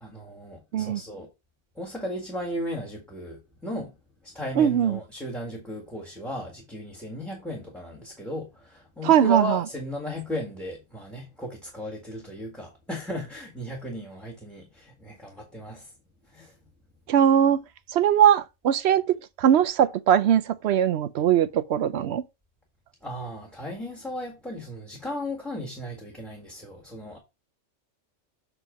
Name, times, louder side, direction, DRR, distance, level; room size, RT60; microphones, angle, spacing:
voice 1, 0.0-1.3 1.8-3.9 4.2-15.9 16.3-16.5 23.0-27.2, equal, ahead, 1.6 m, -35 dB
voice 2, 4.6-5.0 9.0-9.6 17.1-17.6 17.9-19.0 19.4-22.2, right 9 dB, 65° right, 0.8 m, -20 dB
7.6 x 3.5 x 5.0 m
omnidirectional pair, 1.3 m